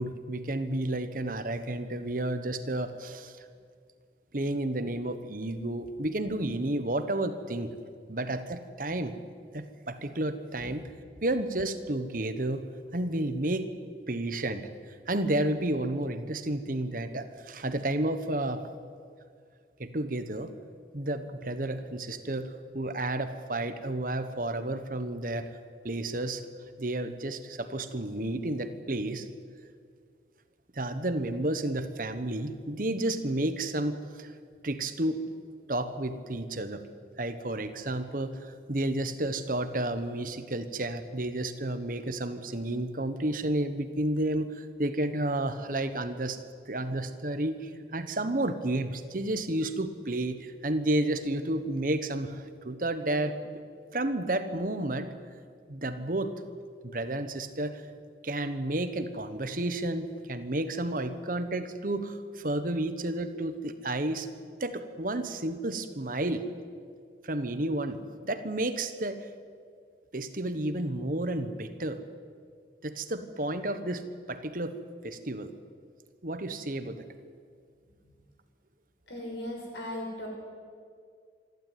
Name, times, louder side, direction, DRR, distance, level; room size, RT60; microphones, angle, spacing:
voice 1, 0.0-3.4 4.3-7.7 8.1-9.1 9.5-10.9 11.2-13.6 14.1-14.7 15.1-18.6 19.8-20.5 20.9-25.5 25.8-26.4 26.8-29.3 30.7-34.3 34.6-35.2 35.7-36.8 37.2-46.4 46.7-53.6 53.9-55.1 55.7-56.3 56.8-57.8 58.2-64.3 64.6-66.4 67.2-69.3 70.1-72.0 72.8-74.8 75.0-75.5 76.2-77.0, right 1 dB, 50° right, 10 dB, 1.3 m, -31 dB
voice 2, 79.1-80.3, left 1 dB, 85° left, 1 dB, 6.3 m, -37 dB
26.0 x 12.0 x 9.5 m, 2.1 s
head